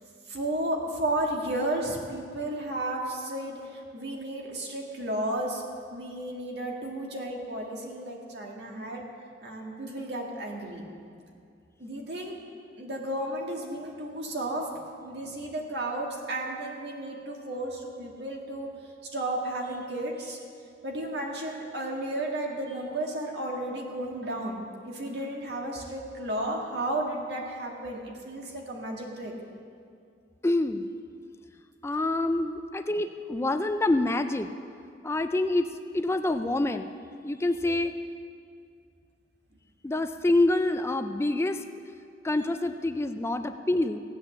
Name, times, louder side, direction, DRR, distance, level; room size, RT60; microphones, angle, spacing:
voice 1, 0.3-5.6 5.9-9.0 9.4-10.9 11.8-12.4 12.8-14.7 15.0-18.7 19.1-20.4 20.8-29.3, right 1 dB, 65° right, -1 dB, 1.9 m, -33 dB
voice 2, 30.4-30.9 31.8-34.5 35.0-36.9 37.2-38.0 39.8-41.6 42.2-44.0, left 2 dB, 15° left, 8 dB, 0.4 m, -26 dB
16.5 x 8.7 x 7.0 m, 2.3 s
head